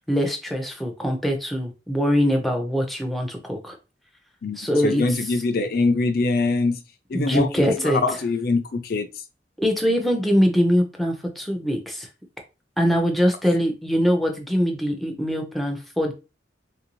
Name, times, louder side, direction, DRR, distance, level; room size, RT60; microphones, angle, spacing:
voice 1, 0.1-3.7 4.6-5.0 7.1-8.0 9.6-12.1 12.8-16.1, equal, ahead, 2 dB, 0.6 m, -22 dB
voice 2, 4.4-6.8 7.1-9.1, left 3 dB, 55° left, 9 dB, 0.4 m, -23 dB
3.3 x 2.6 x 3.0 m, 0.30 s
head